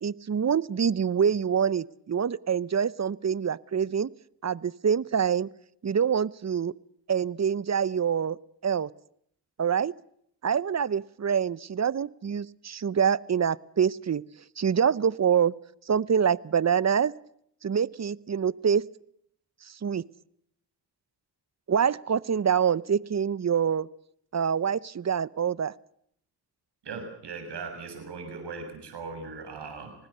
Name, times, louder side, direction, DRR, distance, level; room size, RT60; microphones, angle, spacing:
voice 1, 0.0-4.1 4.4-5.5 5.8-6.7 7.1-8.4 8.6-8.9 9.6-9.9 10.4-14.2 14.6-15.5 15.9-17.1 17.6-18.8 19.7-20.0 21.7-23.9 24.3-25.7, right 7 dB, 40° right, 21 dB, 0.8 m, -25 dB
voice 2, 26.8-29.9, right 4 dB, 85° right, 6 dB, 6.9 m, -39 dB
25.0 x 19.5 x 6.8 m, 0.70 s
cardioid pair, 55°, 40 cm